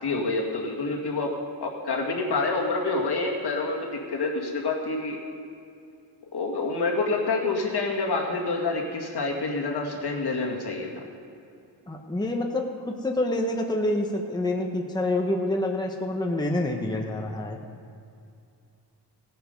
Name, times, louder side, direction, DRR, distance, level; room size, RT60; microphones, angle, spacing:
voice 1, 0.0-1.3 1.6-5.2 6.3-10.9, left 3 dB, 60° left, 0 dB, 2.1 m, -27 dB
voice 2, 11.9-17.6, left 1 dB, 10° left, 1 dB, 1.0 m, -27 dB
17.5 x 9.3 x 5.3 m, 2.5 s
wide cardioid pair, 150°, 43 cm